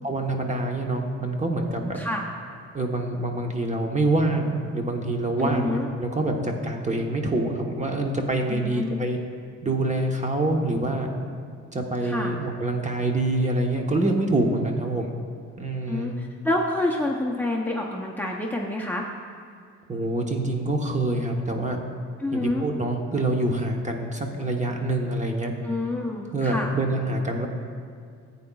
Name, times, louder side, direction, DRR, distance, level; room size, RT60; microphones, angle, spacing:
voice 1, 0.0-2.0 2.7-9.2 9.6-11.1 11.7-15.2 15.6-16.1 19.9-21.8 22.3-25.5 26.3-27.5, right 2 dB, 25° right, 2 dB, 1.1 m, -26 dB
voice 2, 5.4-5.9 8.5-9.0 12.0-12.3 15.9-19.1 22.2-22.6 25.6-26.7, left 2 dB, 5° left, 0 dB, 0.7 m, -28 dB
14.0 x 8.6 x 2.4 m, 2.2 s
cardioid pair, 90°, 30 cm